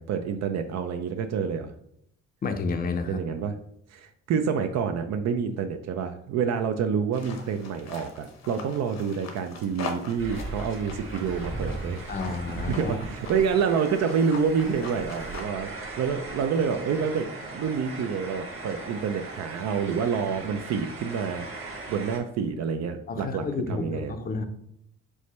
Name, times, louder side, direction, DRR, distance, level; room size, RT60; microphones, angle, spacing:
voice 1, 0.0-1.7 3.1-3.5 3.9-12.0 12.3-12.4 12.7-21.5 21.9-24.1, right 6 dB, 60° right, 7 dB, 0.4 m, -28 dB
voice 2, 2.4-3.2 12.1-13.0 23.1-24.4, left 4 dB, 30° left, 7 dB, 0.5 m, -30 dB
sound 1, 7.1-15.4, left 4 dB, 60° left, 0.9 m, -42 dB
sound 2, 10.2-22.2, right 3 dB, 45° right, 1.3 m, -38 dB
4.7 x 2.1 x 4.1 m, 0.74 s
cardioid pair, 90°, 30 cm